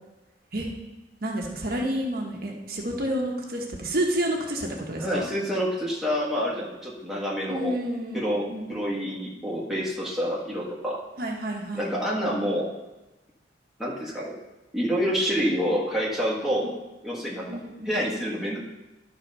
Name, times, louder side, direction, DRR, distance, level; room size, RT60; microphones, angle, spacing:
voice 1, 1.2-5.3 7.5-8.8 11.2-11.9 16.6-16.7 17.5-18.0, right 1 dB, 55° right, 0 dB, 1.2 m, -30 dB
voice 2, 5.0-7.7 8.1-11.0 11.7-12.7 13.8-14.4 14.7-16.7 17.0-17.5 17.8-18.6, equal, ahead, -5 dB, 1.5 m, -27 dB
11.5 x 4.0 x 5.4 m, 1.0 s
head